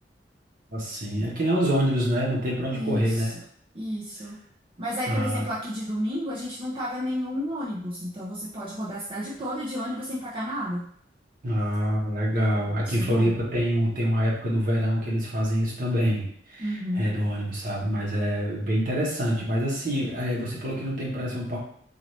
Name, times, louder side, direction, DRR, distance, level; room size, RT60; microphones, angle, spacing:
voice 1, 0.7-3.3 5.1-5.4 11.4-21.6, equal, 50° right, -4 dB, 1.2 m, -26 dB
voice 2, 2.7-3.3 3.7-4.4 4.8-10.9 12.9-13.3 16.6-17.1, equal, 30° right, -8 dB, 0.6 m, -31 dB
4.1 x 2.7 x 3.2 m, 0.64 s
head